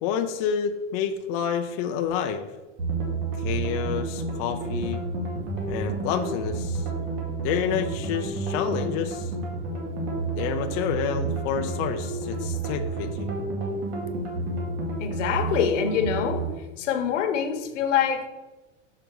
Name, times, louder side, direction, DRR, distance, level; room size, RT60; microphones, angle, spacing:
voice 1, 0.0-2.5 3.4-5.0 5.7-6.9 7.4-9.3 10.4-13.3, left 8 dB, 35° left, 5 dB, 0.4 m, -29 dB
sound 1, 2.8-16.5, right 3 dB, 55° right, 2.1 m, -30 dB
voice 2, 15.0-16.5 16.8-18.3, left 8 dB, 75° left, 8 dB, 1.0 m, -25 dB
6.6 x 5.0 x 4.6 m, 1.1 s
supercardioid pair, 160°, 36 cm